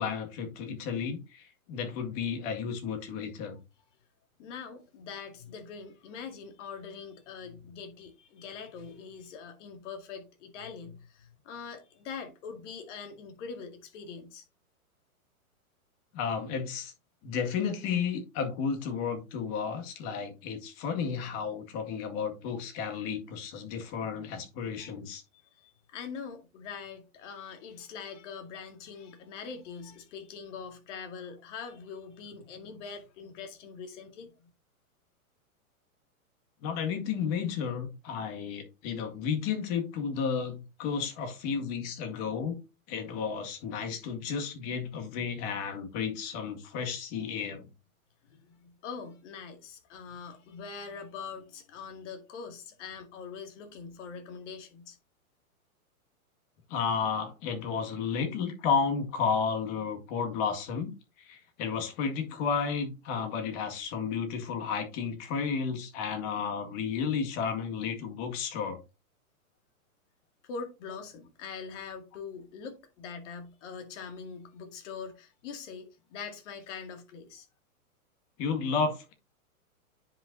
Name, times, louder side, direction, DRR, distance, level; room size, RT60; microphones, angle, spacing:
voice 1, 0.0-3.6 16.1-16.9 17.2-25.2 36.6-42.6 42.9-47.7 56.7-68.8 78.4-79.1, left 6 dB, 35° left, 1.9 m, -32 dB
voice 2, 4.4-14.4 25.6-34.5 48.2-55.0 70.4-77.5, left 5 dB, 55° left, 2.3 m, -43 dB
9.7 x 5.3 x 2.6 m
hypercardioid pair, 130°, 44 cm